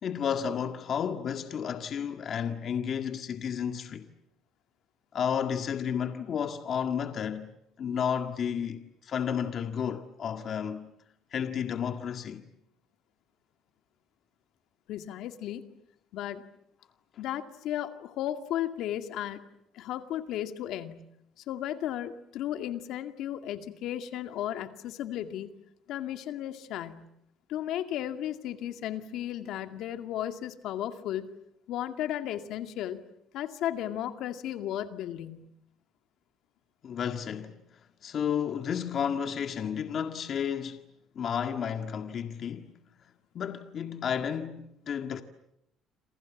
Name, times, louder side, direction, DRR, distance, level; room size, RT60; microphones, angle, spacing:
voice 1, 0.0-4.1 5.1-10.9 11.3-12.4 36.8-37.6 38.0-40.8 41.2-42.7 43.3-45.2, left 8 dB, 45° left, 1.8 m, -32 dB
voice 2, 14.9-15.7 16.1-16.4 17.2-19.4 19.7-21.0 21.4-25.5 25.9-27.1 27.5-31.3 31.7-33.0 33.3-35.5, left 11 dB, 70° left, 2.2 m, -34 dB
28.0 x 28.0 x 7.3 m
cardioid pair, 115°, 0 cm